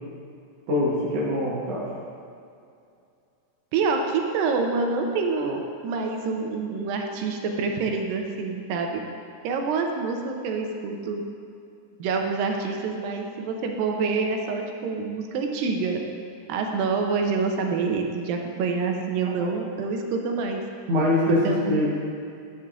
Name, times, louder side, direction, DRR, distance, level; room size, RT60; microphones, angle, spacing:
voice 1, 0.7-1.9 19.4-19.5 20.9-21.9, left 1 dB, 60° right, -6 dB, 1.7 m, -23 dB
voice 2, 3.7-9.0 9.4-11.3 12.0-16.0 16.5-20.6 21.3-21.8, right 4 dB, 80° right, 2 dB, 2.4 m, -27 dB
10.5 x 10.5 x 2.4 m, 2.5 s
omnidirectional pair, 4.1 m